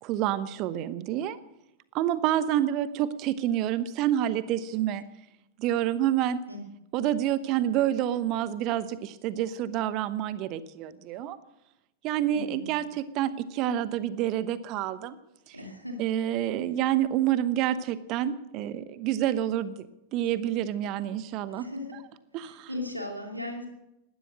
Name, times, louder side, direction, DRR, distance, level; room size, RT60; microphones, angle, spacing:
voice 1, 0.0-1.4 1.9-5.0 5.6-6.4 6.9-11.4 12.0-15.2 15.5-15.6 16.0-19.9 20.1-21.7 22.3-22.7, right 11 dB, 40° right, 15 dB, 1.0 m, -28 dB
voice 2, 12.3-12.7 15.5-16.1 21.5-22.0 22.4-23.7, left 2 dB, 90° right, 2 dB, 2.7 m, -37 dB
17.5 x 12.5 x 6.2 m, 0.88 s
figure-of-eight pair, 90°, 0 cm